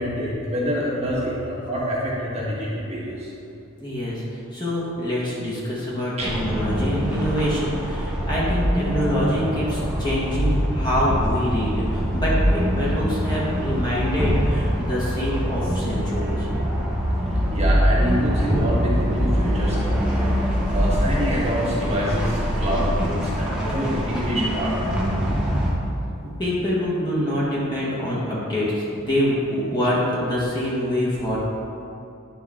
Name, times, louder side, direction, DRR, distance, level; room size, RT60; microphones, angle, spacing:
voice 1, 0.0-3.3 6.2-6.3 17.5-25.2, equal, 30° right, -7 dB, 1.4 m, -26 dB
voice 2, 3.8-4.2 4.5-16.5 26.4-31.4, equal, 20° left, -7 dB, 1.5 m, -25 dB
sound 1, 6.2-25.7, equal, 5° right, 1.0 m, -24 dB
10.0 x 5.1 x 3.7 m, 2.7 s
head